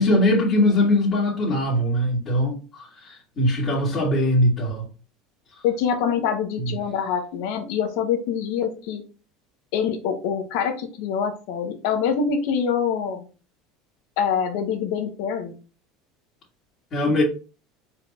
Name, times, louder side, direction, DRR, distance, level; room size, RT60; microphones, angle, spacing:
voice 1, 0.0-4.9 6.6-6.8 16.9-17.2, left 1 dB, 40° left, 2.0 m, -21 dB
voice 2, 5.6-9.0 9.7-13.2 14.2-15.5, left 7 dB, 70° left, 1.1 m, -25 dB
4.6 x 4.5 x 2.5 m
supercardioid pair, 105°, 0 cm